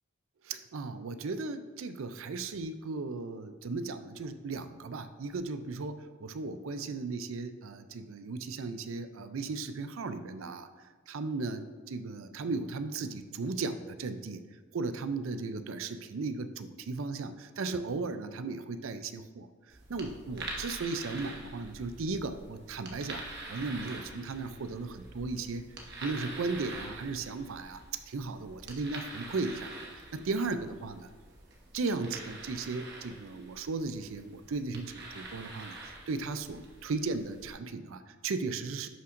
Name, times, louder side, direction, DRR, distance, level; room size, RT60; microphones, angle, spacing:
voice 1, 0.4-10.7 11.1-14.4 14.7-19.5 19.9-25.7 26.0-31.1 31.7-38.9, right 3 dB, 70° right, 10 dB, 0.5 m, -36 dB
sound 1, 19.7-37.5, right 2 dB, 50° right, 1.1 m, -46 dB
11.0 x 5.5 x 2.6 m, 1.4 s
head